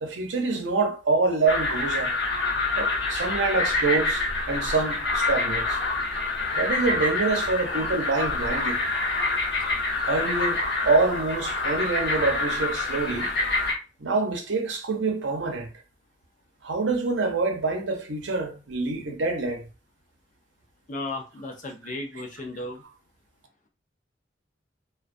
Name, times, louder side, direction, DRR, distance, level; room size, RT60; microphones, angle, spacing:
voice 1, 0.0-2.1 2.8-5.8 6.5-8.8 10.1-13.3 14.0-15.7 16.6-19.7, right 3 dB, 90° right, 0.6 m, -26 dB
sound 1, 1.5-13.7, left 2 dB, 70° left, 0.8 m, -27 dB
voice 2, 20.9-22.8, left 2 dB, 45° left, 0.4 m, -35 dB
2.3 x 2.2 x 2.5 m
head